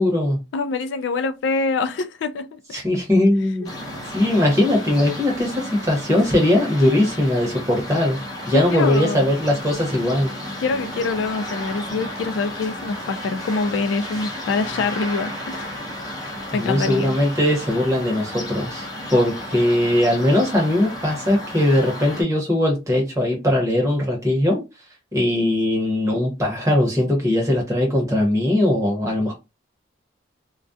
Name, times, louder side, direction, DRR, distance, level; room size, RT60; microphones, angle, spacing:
voice 1, 0.0-0.4 2.7-3.7 4.1-8.2 8.5-10.3 16.5-24.6 25.1-29.3, left 1 dB, 15° right, 0.8 m, -20 dB
voice 2, 0.5-2.6 3.6-3.7 8.5-9.3 10.6-15.8 16.5-17.1, left 4 dB, 70° left, 0.3 m, -25 dB
sound 1, 3.6-22.2, left 1 dB, 20° left, 0.6 m, -33 dB
2.3 x 2.1 x 2.5 m
head